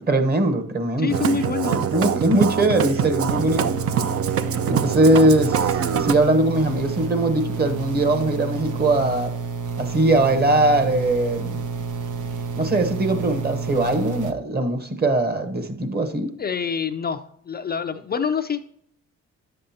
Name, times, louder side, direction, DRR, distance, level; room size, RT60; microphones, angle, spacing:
voice 1, 0.0-1.4 1.7-3.8 4.7-9.3 9.8-11.5 12.6-16.3, right 2 dB, 30° right, 8 dB, 1.2 m, -21 dB
voice 2, 1.0-1.9 16.4-18.7, left 6 dB, 35° left, 7 dB, 0.4 m, -26 dB
Musical instrument, 1.1-6.1, right 8 dB, 50° right, 0.6 m, -24 dB
sound 1, 3.3-14.3, right 5 dB, 80° right, 0.9 m, -30 dB
9.8 x 7.6 x 2.8 m, 0.66 s
cardioid pair, 90°, 30 cm